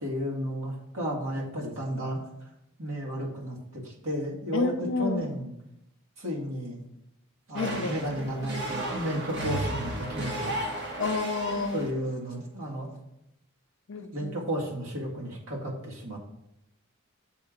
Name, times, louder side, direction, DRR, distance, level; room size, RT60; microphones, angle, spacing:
voice 1, 0.0-2.2 2.8-4.7 5.0-5.5 6.2-6.8 7.5-11.0 11.7-13.0 14.1-16.2, equal, 75° right, -3 dB, 2.1 m, -33 dB
voice 2, 4.5-5.2 7.5-8.0 11.0-11.8 13.9-14.3, left 3 dB, 60° left, 7 dB, 0.5 m, -29 dB
sound 1, 7.5-12.0, right 1 dB, 50° right, 1.3 m, -34 dB
7.1 x 3.8 x 5.9 m, 0.82 s
head